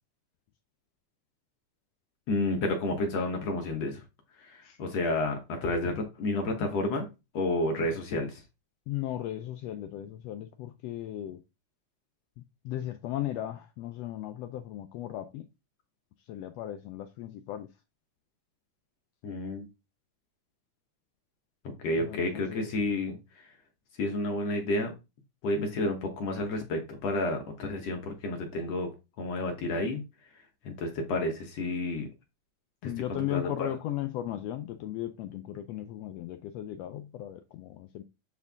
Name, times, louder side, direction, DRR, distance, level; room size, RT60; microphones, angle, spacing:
voice 1, 2.3-4.0 4.4-7.1 7.3-8.4 19.2-19.7 21.8-23.5 24.0-24.9 25.4-30.0 30.6-32.1 32.8-33.7, left 2 dB, 60° left, 2.1 m, -31 dB
voice 2, 8.9-11.4 12.4-15.5 16.2-17.7 22.0-22.7 26.6-26.7 32.8-38.0, left 13 dB, 90° left, 1.4 m, -36 dB
8.2 x 4.4 x 3.5 m
omnidirectional pair, 3.5 m